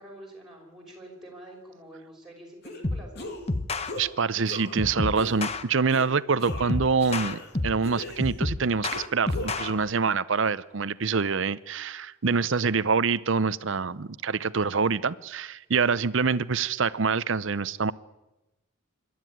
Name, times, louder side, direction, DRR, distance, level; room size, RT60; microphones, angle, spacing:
voice 1, 0.0-3.3, right 1 dB, ahead, -2 dB, 5.4 m, -46 dB
sound 1, 2.6-2.8 3.2-3.5 3.9-4.1 4.5-4.8 5.2-5.5 5.9-6.1 6.4-7.5 7.8-8.5 8.9-9.9, left 2 dB, 50° left, 2.4 m, -39 dB
sound 2, 2.8-3.1 3.5-3.9 4.8-5.6 6.5-7.9 8.2-9.7, left 2 dB, 30° left, 0.9 m, -30 dB
voice 2, 4.0-17.9, right 5 dB, 60° right, 17 dB, 0.7 m, -26 dB
25.5 x 12.0 x 9.3 m, 1.0 s
head